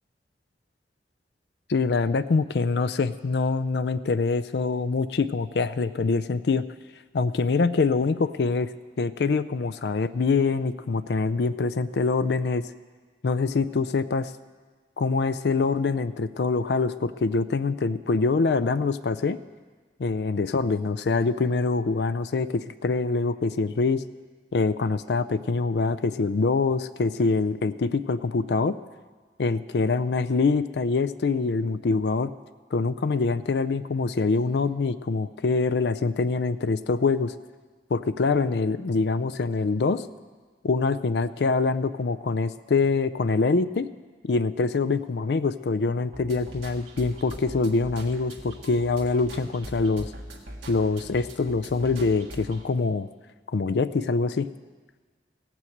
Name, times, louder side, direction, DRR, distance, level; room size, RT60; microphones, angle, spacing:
voice 1, 1.7-6.6 7.1-8.7 9.0-12.7 13.2-14.3 15.0-19.4 20.0-24.0 24.5-28.8 29.4-32.3 32.7-37.3 37.9-40.1 40.6-43.9 44.2-50.1 50.7-53.1 53.5-54.5, left 4 dB, 70° left, 12 dB, 0.4 m, -24 dB
sound 1, 46.1-52.6, right 1 dB, 85° right, 1.8 m, -42 dB
16.0 x 6.1 x 7.9 m, 1.4 s
head